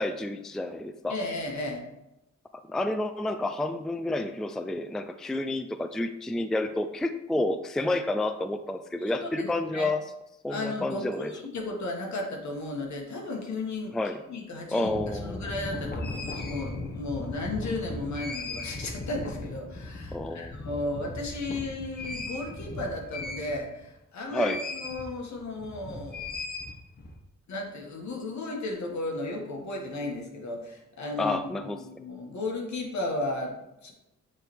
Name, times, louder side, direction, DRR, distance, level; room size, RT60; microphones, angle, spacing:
voice 1, 0.0-1.2 2.7-10.0 10.4-11.3 13.9-14.2 14.7-15.5 20.1-20.5 24.3-24.6 31.2-31.8, left 2 dB, ahead, 9 dB, 0.4 m, -30 dB
voice 2, 1.1-1.8 9.0-9.9 10.5-14.0 14.3-26.2 27.5-33.9, left 2 dB, 70° left, 1 dB, 1.6 m, -34 dB
sound 1, 14.8-23.9 24.4-25.0 25.3-27.1, left 2 dB, 30° left, 1.2 m, -37 dB
8.1 x 3.4 x 4.6 m, 0.90 s
cardioid pair, 80°, 30 cm